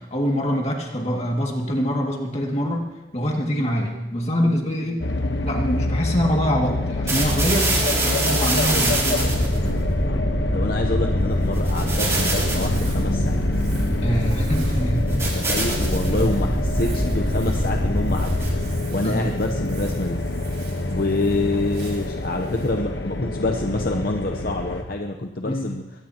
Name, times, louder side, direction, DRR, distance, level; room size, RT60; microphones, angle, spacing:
voice 1, 0.0-2.9 3.1-5.0 5.4-7.7 8.0-9.4 14.0-15.4 16.0-16.3 19.0-19.3 25.4-25.7, equal, 35° left, 0 dB, 2.2 m, -25 dB
sound 1, 5.0-24.8, left 2 dB, 80° left, 1.1 m, -27 dB
sound 2, 7.1-18.9, right 1 dB, 15° right, 3.3 m, -24 dB
voice 2, 10.5-13.4 15.1-18.4 18.6-20.2 20.9-25.8, left 2 dB, 55° left, 3 dB, 0.8 m, -27 dB
Crumpling crinkling, 11.7-24.2, right 3 dB, 65° right, 4.4 m, -44 dB
22.5 x 17.5 x 2.9 m, 1.1 s
head